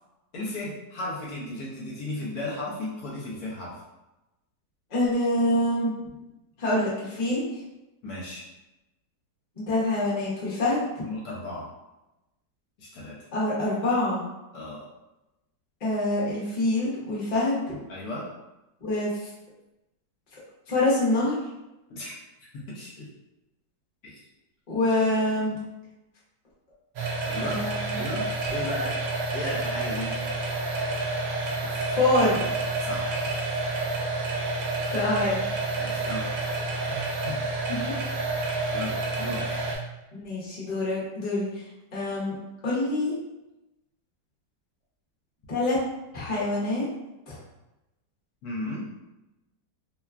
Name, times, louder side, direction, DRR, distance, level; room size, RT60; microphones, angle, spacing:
voice 1, 0.3-3.8 8.0-8.5 11.0-11.7 12.8-13.2 14.5-14.8 17.9-18.3 21.9-22.1 22.5-23.1 24.0-24.2 27.2-27.6 27.9-29.0 29.3-30.1 32.8-33.3 35.8-36.3 36.9-37.5 38.7-39.5 48.4-48.9, left 2 dB, 70° left, -5 dB, 1.1 m, -35 dB
voice 2, 4.9-6.0 6.6-7.6 9.6-11.0 13.3-14.3 15.8-17.8 18.8-19.1 20.7-21.4 24.7-25.6 27.4-27.9 31.7-32.4 34.9-35.4 37.7-37.9 40.1-41.6 41.9-42.3 42.6-43.1 45.5-45.8 46.1-46.9 47.3-47.4, left 1 dB, 40° left, -7 dB, 0.6 m, -26 dB
sound 1, 27.0-39.8, right 2 dB, 70° right, 1.0 m, -29 dB
3.0 x 2.2 x 2.3 m, 0.98 s
omnidirectional pair, 1.8 m